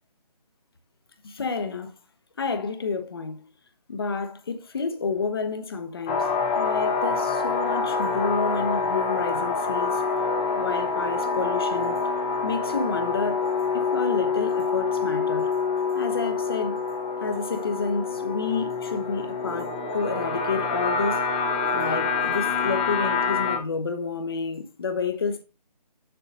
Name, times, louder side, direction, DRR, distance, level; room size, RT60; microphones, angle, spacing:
voice 1, 1.2-1.9 2.4-3.5 3.9-6.3 6.5-10.0 10.6-12.1 12.4-13.5 13.7-15.5 15.9-16.8 17.2-21.2 21.7-25.4, left 4 dB, 35° left, 1.0 m, -30 dB
sound 1, 6.1-23.6, left 4 dB, 10° left, 0.8 m, -26 dB
7.7 x 6.9 x 4.0 m
figure-of-eight pair, 160°, 21 cm